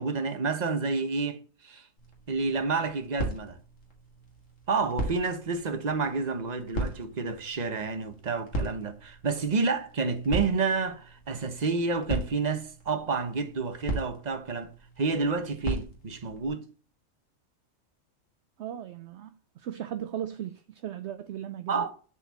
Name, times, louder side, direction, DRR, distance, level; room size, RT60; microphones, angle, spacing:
voice 1, 0.0-1.4 1.6-1.8 2.3-3.6 4.7-14.7 15.0-16.6 21.7-21.9, right 4 dB, 35° right, 1.1 m, -29 dB
sound 1, 2.0-16.5, right 1 dB, 75° left, 2.2 m, -38 dB
voice 2, 18.6-21.9, right 10 dB, 65° right, 0.8 m, -37 dB
7.2 x 4.4 x 6.9 m
omnidirectional pair, 1.3 m